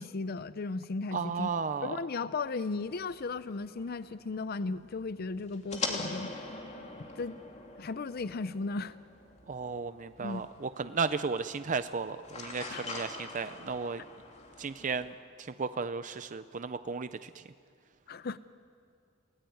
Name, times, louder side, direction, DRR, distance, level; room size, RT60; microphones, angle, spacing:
voice 1, 0.0-1.5 1.8-6.5 7.0-7.4 7.8-9.0 10.2-10.4 12.7-12.9 18.1-18.4, left 3 dB, 50° left, 14 dB, 0.5 m, -36 dB
voice 2, 1.1-2.0 9.5-14.1 14.6-17.4, right 5 dB, 40° right, 11 dB, 0.6 m, -34 dB
sound 1, 2.4-15.1, left 3 dB, 35° left, 3.0 m, -44 dB
30.0 x 18.5 x 9.3 m, 2.4 s
head